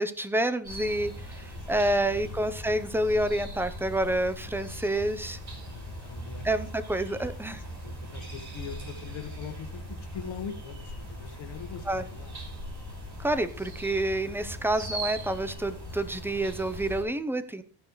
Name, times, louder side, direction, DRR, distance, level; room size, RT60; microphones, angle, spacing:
voice 1, 0.0-5.4 6.4-7.6 11.9-12.0 13.2-17.6, right 1 dB, 5° right, 11 dB, 0.7 m, -28 dB
sound 1, 0.6-17.0, equal, 40° right, 5.5 m, -40 dB
voice 2, 1.5-2.3 5.5-6.5 7.2-12.6, left 7 dB, 90° left, 5 dB, 1.6 m, -43 dB
14.0 x 11.0 x 3.2 m, 0.41 s
wide cardioid pair, 150°, 45 cm